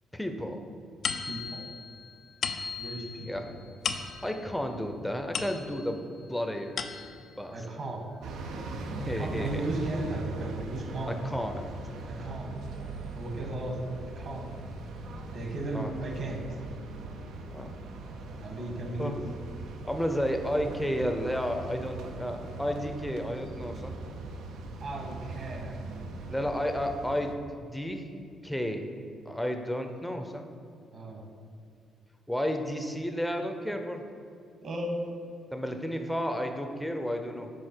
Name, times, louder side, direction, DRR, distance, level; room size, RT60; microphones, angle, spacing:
voice 1, 0.1-0.6 3.3-3.5 3.8-6.7 7.4-7.6 9.1-9.6 11.1-11.7 15.7-15.9 17.5-17.8 19.0-19.2 19.8-24.0 26.3-28.1 28.4-28.9 29.3-30.5 32.3-34.0 35.5-37.5, equal, 5° left, 5 dB, 0.6 m, -32 dB
sound 1, 1.0-6.0 6.5-7.4, left 6 dB, 60° left, 0.4 m, -37 dB
voice 2, 1.3-1.6 2.8-3.5 7.5-8.0 9.0-11.2 12.1-12.6 13.1-13.8 14.1-14.5 15.3-16.4 18.4-19.2 24.8-25.7 30.9-31.2 34.6-35.0, right 2 dB, 55° right, 1 dB, 1.4 m, -35 dB
sound 2, 8.2-27.3, right 2 dB, 85° right, 0.6 m, -40 dB
6.5 x 4.4 x 4.4 m, 2.4 s
cardioid pair, 90°, 0 cm